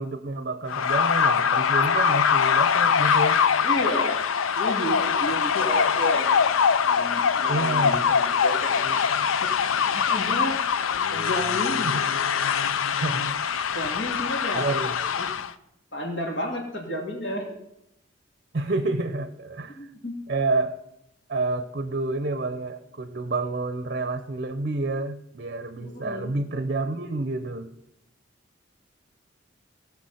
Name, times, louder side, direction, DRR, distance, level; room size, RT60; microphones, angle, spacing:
voice 1, 0.0-3.4 7.5-8.1 11.8-12.1 13.0-13.4 14.5-15.1 18.5-19.9 20.3-20.8 21.3-27.7, right 2 dB, 45° right, 10 dB, 0.6 m, -29 dB
sound 1, 0.7-15.5, left 7 dB, 90° left, 0.5 m, -23 dB
voice 2, 3.6-4.2 4.5-6.4 6.8-9.5 9.7-10.6 11.1-11.9 13.7-14.7 15.1-15.3 15.9-17.5 19.7-20.2 25.8-26.4, equal, 65° left, 1 dB, 2.5 m, -32 dB
17.0 x 6.1 x 5.7 m, 0.82 s
head